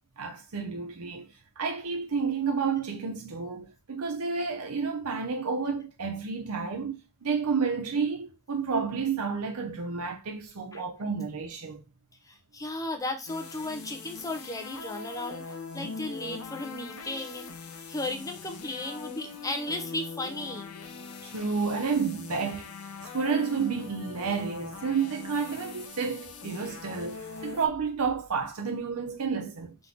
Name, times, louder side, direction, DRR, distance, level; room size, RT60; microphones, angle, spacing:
voice 1, 0.2-11.8 21.2-22.7 23.1-29.8, right 5 dB, 85° right, 0.7 m, -30 dB
voice 2, 12.3-17.5 17.9-20.7, left 2 dB, 15° left, 0.8 m, -35 dB
sound 1, 13.3-27.7, left 4 dB, 75° left, 0.7 m, -42 dB
3.7 x 3.0 x 3.8 m
head